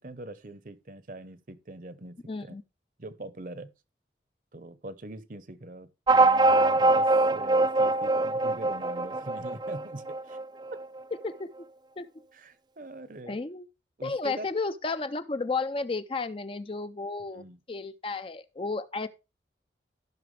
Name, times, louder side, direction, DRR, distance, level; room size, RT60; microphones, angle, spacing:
voice 1, 0.0-2.5 3.0-3.7 4.5-10.4 12.3-13.4 14.0-14.5 17.3-17.6, right 2 dB, 50° right, 0.8 m, -43 dB
voice 2, 2.3-2.6 11.2-11.5 12.0-12.1 13.3-13.7 14.0-19.1, left 3 dB, 30° left, 0.5 m, -33 dB
sound 1, 6.1-11.0, right 2 dB, 25° right, 0.4 m, -23 dB
14.5 x 5.9 x 3.3 m
head